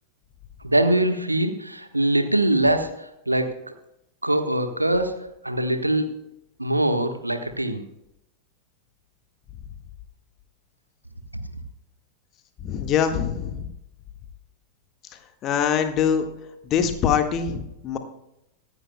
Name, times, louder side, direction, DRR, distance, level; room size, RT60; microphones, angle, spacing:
voice 1, 0.6-3.7 4.2-6.2 6.6-7.8, right 1 dB, 85° right, 8 dB, 1.3 m, -23 dB
voice 2, 12.6-13.7 15.4-16.3 16.6-18.0, left 8 dB, 35° left, 6 dB, 1.6 m, -23 dB
23.5 x 10.5 x 2.2 m, 0.84 s
figure-of-eight pair, 90°, 0 cm